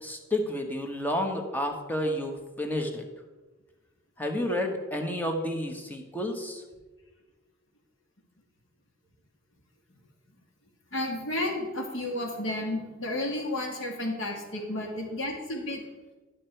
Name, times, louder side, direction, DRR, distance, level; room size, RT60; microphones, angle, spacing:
voice 1, 0.0-3.0 4.2-6.6, left 1 dB, 10° left, 4 dB, 1.1 m, -30 dB
voice 2, 10.9-15.8, left 1 dB, 80° left, 1 dB, 2.0 m, -32 dB
11.5 x 6.6 x 4.5 m, 1.2 s
head